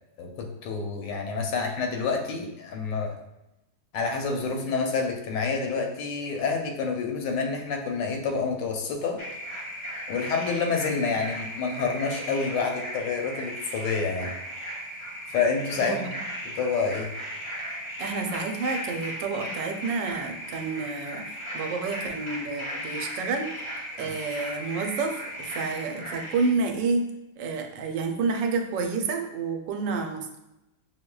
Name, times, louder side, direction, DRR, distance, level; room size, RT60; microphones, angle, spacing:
voice 1, 0.2-3.2 3.9-9.2 10.1-14.3 15.3-16.1 16.5-17.1, left 4 dB, 90° left, 2 dB, 1.3 m, -28 dB
sound 1, 9.2-26.5, equal, 55° left, 0.3 m, -37 dB
voice 2, 15.8-16.1 18.0-23.5 24.0-27.1 27.4-30.4, right 4 dB, 90° right, 4 dB, 1.2 m, -29 dB
6.2 x 2.1 x 2.2 m, 0.92 s
omnidirectional pair, 1.9 m